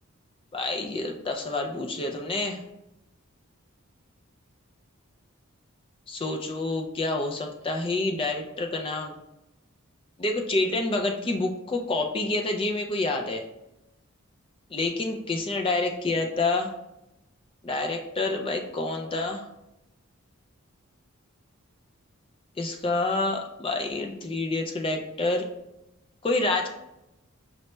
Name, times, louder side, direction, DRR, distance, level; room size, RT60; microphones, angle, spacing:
voice 1, 0.5-2.6 6.1-9.2 10.2-13.4 14.7-16.7 17.6-19.5 22.6-25.4 26.2-26.7, left 2 dB, 25° left, 3 dB, 0.3 m, -28 dB
5.2 x 2.2 x 3.0 m, 0.88 s
head